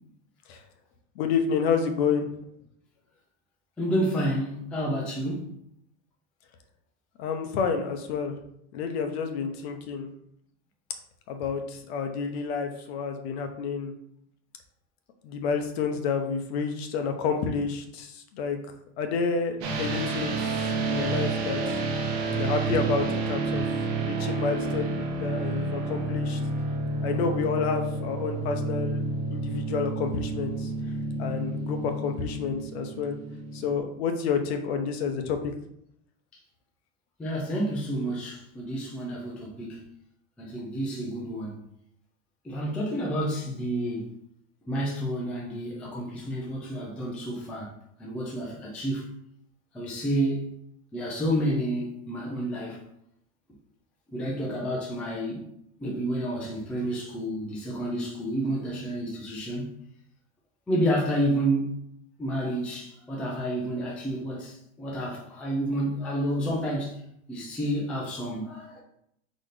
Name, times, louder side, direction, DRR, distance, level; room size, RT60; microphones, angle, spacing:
voice 1, 1.2-2.3 7.2-8.4 8.7-10.1 11.3-13.9 15.2-18.6 19.0-20.4 20.8-21.6 22.4-23.7 24.0-26.4 27.0-29.0 29.3-30.7 31.2-33.2 33.5-35.5, left 5 dB, 60° left, 6 dB, 0.8 m, -29 dB
voice 2, 3.8-5.5 37.2-39.8 40.4-41.6 42.4-44.1 44.7-47.7 48.0-49.1 49.7-50.5 50.9-52.8 54.1-55.5 55.8-59.8 60.7-61.7 62.2-67.0 67.3-68.8, right 1 dB, 5° left, -4 dB, 0.3 m, -30 dB
sound 1, 19.6-33.8, right 3 dB, 55° right, 1.0 m, -30 dB
4.2 x 3.9 x 3.2 m, 0.72 s
supercardioid pair, 160°, 36 cm